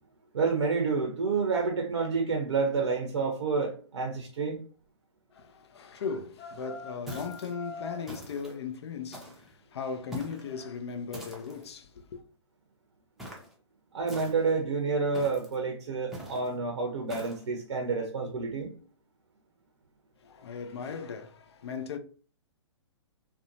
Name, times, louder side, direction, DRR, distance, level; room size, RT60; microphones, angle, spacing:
voice 1, 0.3-4.6 13.9-18.7, right 4 dB, 70° right, 0.6 m, -29 dB
voice 2, 5.3-12.2 20.2-22.0, left 5 dB, 60° left, 0.4 m, -38 dB
sound 1, 6.0-8.1, left 4 dB, 35° left, 0.8 m, -44 dB
sound 2, 7.1-7.5 8.1-8.6 9.1-9.5 10.1-10.5 11.1-11.7 13.2-13.5 14.1-14.6 15.1-15.6 16.1-16.5 17.1-17.4, equal, ahead, 0.6 m, -43 dB
2.6 x 2.1 x 2.7 m
figure-of-eight pair, 125°, 15 cm